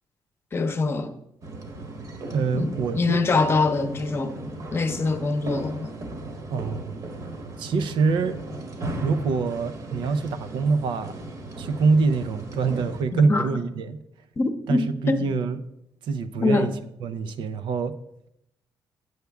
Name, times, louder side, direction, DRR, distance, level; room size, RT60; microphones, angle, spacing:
voice 1, 0.5-1.1 2.5-4.4 4.7-5.9 13.1-13.4 14.4-15.3 16.4-16.7, left 3 dB, 30° left, 0.8 m, -24 dB
sound 1, 1.4-13.0, right 2 dB, 40° right, 1.1 m, -36 dB
voice 2, 2.3-3.2 6.5-7.0 7.6-8.4 9.0-11.2 11.6-14.0 14.7-15.6 16.0-16.7 17.0-17.9, right 4 dB, 80° right, 0.7 m, -25 dB
8.2 x 7.9 x 3.5 m
cardioid pair, 145°, 8 cm